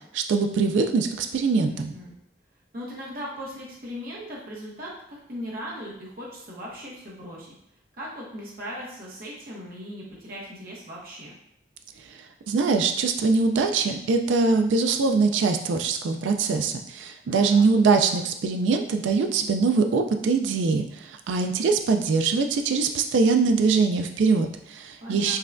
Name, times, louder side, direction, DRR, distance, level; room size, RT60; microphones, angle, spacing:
voice 1, 0.1-1.9 12.5-25.4, right 4 dB, 80° right, 5 dB, 0.3 m, -23 dB
voice 2, 1.6-2.1 2.7-7.5 8.0-11.3 17.2-17.7 25.0-25.4, equal, 50° right, -5 dB, 0.9 m, -38 dB
5.5 x 2.2 x 2.5 m, 0.74 s
head